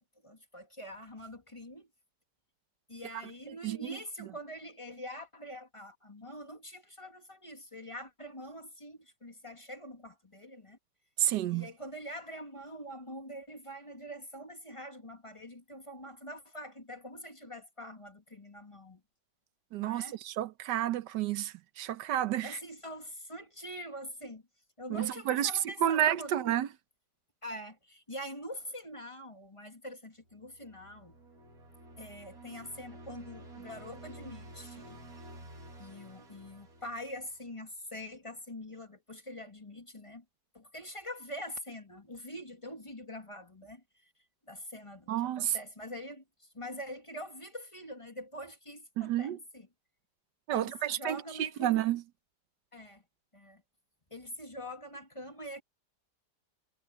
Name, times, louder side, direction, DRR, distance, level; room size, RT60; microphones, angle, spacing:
voice 1, 0.2-1.9 2.9-10.8 11.5-19.0 19.8-20.2 22.4-24.4 24.8-26.6 27.4-31.1 32.0-35.0 35.8-40.2 40.5-44.1 44.5-49.7 50.5-51.7 52.7-53.0 53.3-53.6 54.1-55.6, equal, 20° left, 1.8 m, -44 dB
voice 2, 3.5-3.9 11.2-11.7 19.7-22.6 24.9-26.7 45.1-45.6 49.0-49.4 50.5-52.0, right 12 dB, 85° right, 1.4 m, -30 dB
sound 1, 30.3-37.7, right 1 dB, 55° right, 3.0 m, -51 dB
omnidirectional pair, 1.8 m